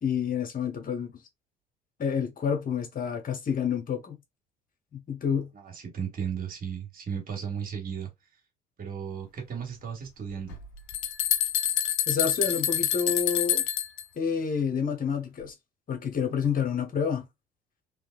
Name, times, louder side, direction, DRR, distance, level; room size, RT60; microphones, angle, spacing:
voice 1, 0.0-1.2 2.0-4.2 4.9-5.5 12.1-13.6 14.1-15.5 15.9-17.3, left 7 dB, 40° left, 1.3 m, -29 dB
voice 2, 5.5-8.1 8.8-10.6, right 7 dB, 45° right, 2.0 m, -35 dB
sound 1, 10.5-14.0, left 11 dB, 65° left, 0.8 m, -27 dB
3.4 x 3.2 x 2.5 m
hypercardioid pair, 55°, 21 cm